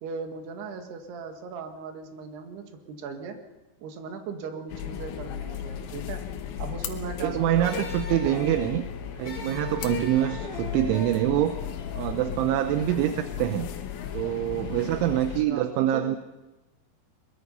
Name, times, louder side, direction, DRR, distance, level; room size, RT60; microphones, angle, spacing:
voice 1, 0.0-3.4 3.8-6.2 6.6-7.8 8.2-8.6 10.4-10.8 13.0-13.1 15.1-15.2 15.5-16.2, right 5 dB, 65° right, 5 dB, 3.6 m, -38 dB
sound 1, 4.7-15.5, left 10 dB, 90° left, 4.1 m, -36 dB
sound 2, 6.0-11.0, left 10 dB, 70° left, 3.7 m, -45 dB
voice 2, 7.2-8.9 9.1-11.6 12.0-13.7 14.1-16.2, right 12 dB, 80° right, 9 dB, 3.1 m, -25 dB
sound 3, 7.6-12.7, left 3 dB, 55° left, 3.8 m, -39 dB
22.5 x 22.0 x 5.5 m, 1.1 s
omnidirectional pair, 5.6 m